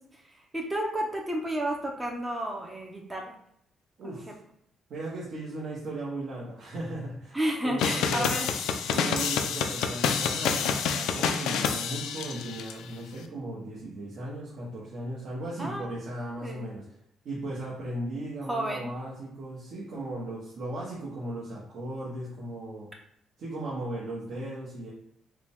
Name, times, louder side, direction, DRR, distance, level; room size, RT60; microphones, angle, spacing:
voice 1, 0.5-3.3 4.0-4.2 7.3-8.5 15.6-15.9 16.4-16.7 18.5-18.9, right 1 dB, 10° right, 0 dB, 0.6 m, -31 dB
voice 2, 4.0-4.4 4.9-7.4 7.6-8.4 8.9-16.8 17.2-22.9 23.4-24.9, right 1 dB, 60° right, -6 dB, 1.1 m, -37 dB
sound 1, 7.8-12.7, left 7 dB, 85° left, 0.4 m, -28 dB
4.8 x 2.3 x 3.5 m, 0.71 s
cardioid pair, 150°, 0 cm